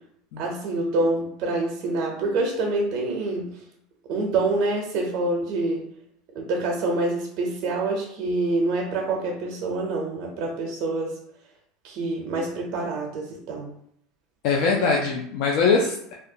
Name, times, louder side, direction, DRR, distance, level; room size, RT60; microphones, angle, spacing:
voice 1, 0.4-3.5 4.1-5.8 6.3-11.1 11.8-13.7 14.7-14.9, right 2 dB, 60° right, 0 dB, 0.5 m, -26 dB
voice 2, 14.4-16.1, left 5 dB, 65° left, -1 dB, 0.3 m, -22 dB
2.3 x 2.1 x 2.7 m, 0.69 s
supercardioid pair, 100°, 0 cm